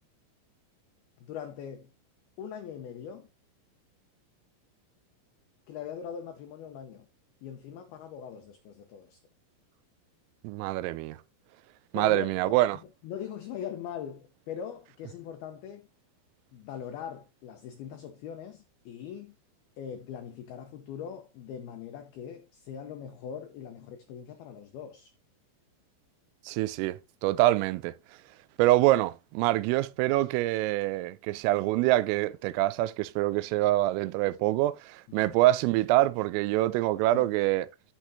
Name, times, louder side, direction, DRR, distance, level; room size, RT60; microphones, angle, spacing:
voice 1, 1.2-1.9 2.4-3.3 5.7-7.1 7.4-9.2 11.9-12.6 13.0-15.9 16.5-19.4 19.8-25.1 35.2-35.4 37.1-37.3, left 8 dB, 85° left, 2.2 m, -41 dB
voice 2, 10.4-11.2 11.9-12.8 26.5-27.9 28.6-37.7, right 16 dB, 90° right, 3.3 m, -25 dB
14.0 x 6.2 x 2.8 m
omnidirectional pair, 5.8 m